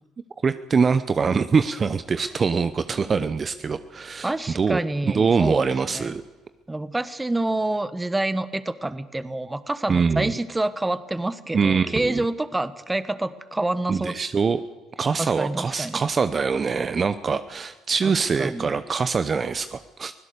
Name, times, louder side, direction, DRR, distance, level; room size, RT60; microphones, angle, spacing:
voice 1, 0.4-6.2 9.9-10.3 11.5-12.2 13.9-14.6 15.0-20.1, right 5 dB, 40° right, 11 dB, 0.8 m, -23 dB
voice 2, 4.2-5.7 5.9-6.1 6.7-14.1 15.2-16.0 18.0-18.1 18.4-18.8, right 2 dB, 15° right, 14 dB, 1.2 m, -27 dB
24.0 x 16.5 x 6.8 m, 1.3 s
supercardioid pair, 70°, 0 cm